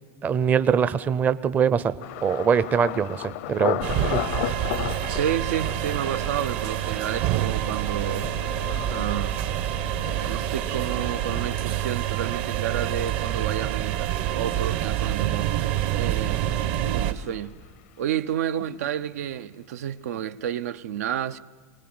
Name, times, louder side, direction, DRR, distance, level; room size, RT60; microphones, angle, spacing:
voice 1, 0.2-1.9 2.2-3.8 4.1-4.5, right 7 dB, 20° right, 0.6 m, -23 dB
Thunder, 2.0-17.8 18.0-18.7 19.1-19.3, left 13 dB, 65° left, 0.7 m, -36 dB
sound 1, 3.8-17.1, right 12 dB, 55° right, 1.1 m, -27 dB
voice 2, 5.0-8.3 8.9-9.4 10.3-15.6 16.0-16.4 16.9-17.6 18.0-21.4, right 10 dB, 85° right, 0.8 m, -30 dB
24.0 x 19.0 x 7.9 m
supercardioid pair, 150°, 8 cm